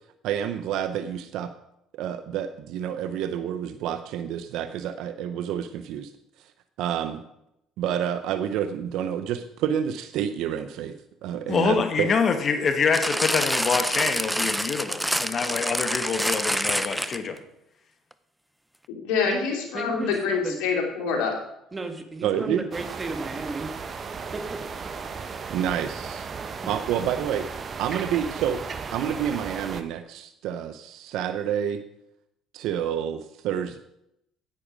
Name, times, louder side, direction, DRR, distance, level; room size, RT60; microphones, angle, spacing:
voice 1, 0.2-1.5 2.0-6.1 6.4-6.5 6.8-7.2 7.8-10.9 11.2-12.1 22.2-22.7 25.5-26.3 26.7-27.4 27.8-28.6 28.9-31.8 32.5-33.8, right 9 dB, 75° right, 10 dB, 0.6 m, -28 dB
voice 2, 11.5-17.4, left 5 dB, 45° left, 8 dB, 1.3 m, -25 dB
sound 1, 12.9-17.4 18.1-18.2, equal, ahead, 0.6 m, -27 dB
voice 3, 19.0-21.3, left 5 dB, 80° left, 0 dB, 2.9 m, -26 dB
voice 4, 19.7-20.6 21.7-23.7 24.3-24.6 26.6-26.7, right 3 dB, 25° right, 6 dB, 1.6 m, -34 dB
sound 2, 22.7-29.8, right 5 dB, 40° right, 0.9 m, -35 dB
9.8 x 8.8 x 5.0 m, 0.81 s
supercardioid pair, 85°, 0 cm